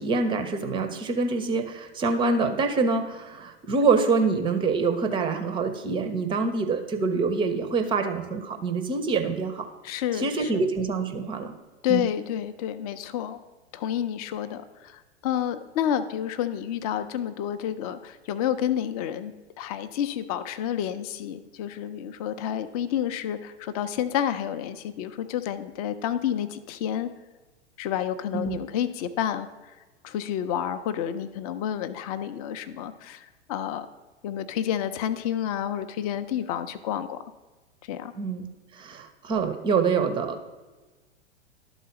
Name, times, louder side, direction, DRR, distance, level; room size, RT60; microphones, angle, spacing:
voice 1, 0.0-9.7 10.2-11.5 11.9-12.0 28.3-28.6 38.2-38.4 38.7-40.4, right 4 dB, 15° right, 7 dB, 0.5 m, -25 dB
voice 2, 9.8-10.6 11.8-13.4 13.7-27.1 27.8-29.7 30.0-33.9 34.2-37.2 37.8-38.1, left 10 dB, 35° left, 11 dB, 0.5 m, -29 dB
11.5 x 4.0 x 5.1 m, 1.2 s
figure-of-eight pair, 100°, 34 cm